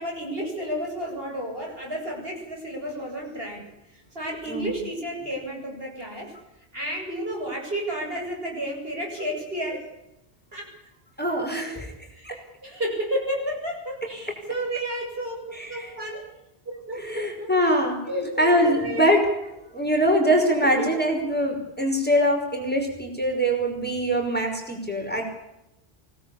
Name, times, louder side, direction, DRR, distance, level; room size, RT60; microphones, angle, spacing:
voice 1, 0.0-3.6 3.9-6.3 6.7-9.9 10.5-10.7 11.7-11.8 12.1-16.3 16.6-17.8 18.1-19.1 20.8-20.9, equal, 60° right, 0 dB, 8.4 m, -32 dB
voice 2, 11.2-11.9 12.2-12.4 15.5-15.9 17.0-19.3 19.7-25.2, equal, 10° left, 2 dB, 5.4 m, -23 dB
24.5 x 18.5 x 8.7 m, 0.88 s
omnidirectional pair, 1.1 m